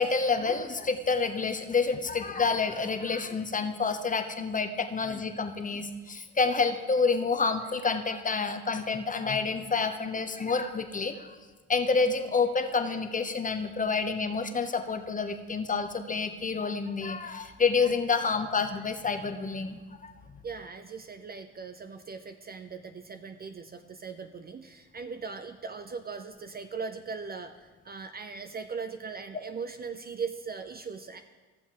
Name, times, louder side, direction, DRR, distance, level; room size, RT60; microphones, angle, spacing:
voice 1, 0.0-11.4 11.7-19.8, left 4 dB, 25° left, 7 dB, 0.8 m, -28 dB
voice 2, 20.4-31.2, right 5 dB, 30° right, 8 dB, 0.5 m, -39 dB
14.5 x 7.1 x 3.0 m, 1.3 s
hypercardioid pair, 60°, 34 cm